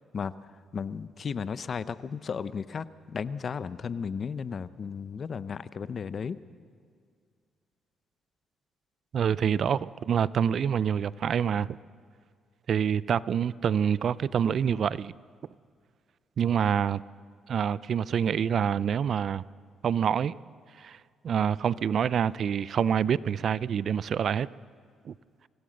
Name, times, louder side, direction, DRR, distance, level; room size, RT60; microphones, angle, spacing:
voice 1, 0.1-6.4, left 6 dB, 45° left, 15 dB, 0.7 m, -34 dB
voice 2, 9.1-11.8 12.7-15.1 16.4-17.0 17.5-19.4 19.8-20.3 20.8-21.0 21.2-24.5 25.0-25.1, right 8 dB, 55° right, 20 dB, 0.4 m, -26 dB
24.5 x 17.0 x 6.5 m, 2.1 s
cardioid pair, 90°, 0 cm